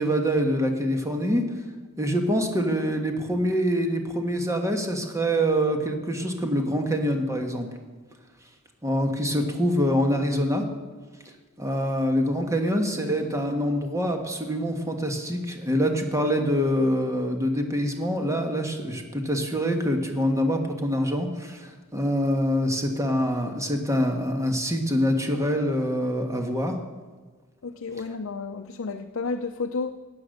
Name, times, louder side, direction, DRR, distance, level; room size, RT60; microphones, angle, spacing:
voice 1, 0.0-1.4 2.0-7.7 8.8-10.6 11.6-26.8, equal, 15° right, 3 dB, 1.5 m, -25 dB
voice 2, 27.6-29.9, left 4 dB, 70° left, 4 dB, 0.6 m, -31 dB
15.5 x 9.7 x 6.6 m, 1.4 s
head